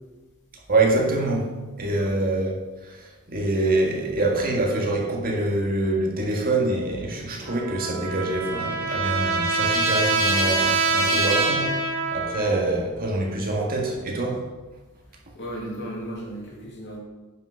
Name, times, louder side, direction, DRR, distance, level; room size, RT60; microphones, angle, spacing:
voice 1, 0.7-1.5 1.8-2.5 2.8-14.4, right 2 dB, 45° right, -1 dB, 1.8 m, -25 dB
Trumpet, 7.4-12.6, right 3 dB, 70° right, 1.7 m, -24 dB
voice 2, 15.1-17.0, right 1 dB, 55° left, -3 dB, 2.6 m, -35 dB
8.9 x 6.1 x 5.6 m, 1.2 s
head